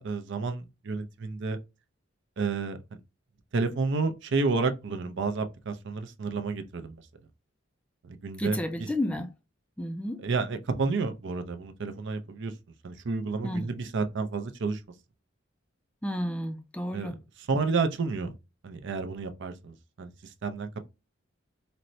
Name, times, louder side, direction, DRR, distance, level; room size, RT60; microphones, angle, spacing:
voice 1, 0.0-1.6 2.4-2.8 3.5-7.0 8.0-8.9 10.2-12.5 12.8-14.8 16.9-18.3 18.6-20.1 20.4-20.9, right 4 dB, 65° right, 0.5 m, -30 dB
voice 2, 8.4-9.3 9.8-10.2 13.4-13.7 16.0-17.2, left 1 dB, 5° left, 0.3 m, -31 dB
4.2 x 2.1 x 2.6 m
head